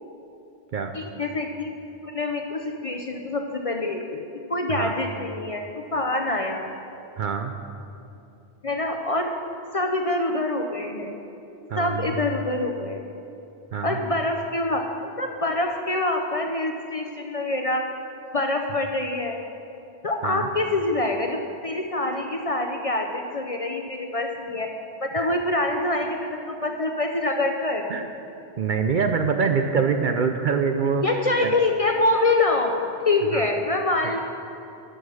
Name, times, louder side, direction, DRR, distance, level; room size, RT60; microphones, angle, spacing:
voice 1, 0.9-1.7 2.0-4.2 4.5-6.6 8.6-9.3 9.7-11.1 11.8-13.0 13.8-14.9 15.2-17.9 18.3-19.4 20.0-24.7 25.0-27.9 31.0-34.2, left 2 dB, 40° left, 3 dB, 0.6 m, -25 dB
voice 2, 7.2-7.5 11.7-12.2 13.7-14.0 20.2-20.5 25.2-25.3 27.9-28.1 28.6-31.0 31.4-31.5 33.3-33.5 34.0-34.1, right 6 dB, 55° right, 6 dB, 0.6 m, -25 dB
12.0 x 6.3 x 6.2 m, 2.8 s
omnidirectional pair, 1.1 m